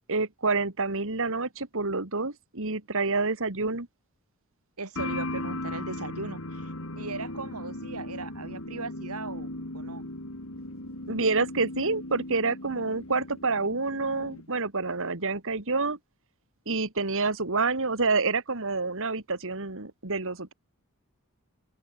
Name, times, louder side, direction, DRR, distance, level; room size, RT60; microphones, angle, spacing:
voice 1, 0.1-3.9 11.1-16.0 16.7-20.5, right 3 dB, 65° right, 2.7 m, -28 dB
voice 2, 4.8-10.1, right 3 dB, 85° right, 3.0 m, -38 dB
sound 1, 5.0-14.5, left 1 dB, 65° left, 4.8 m, -37 dB
open air
head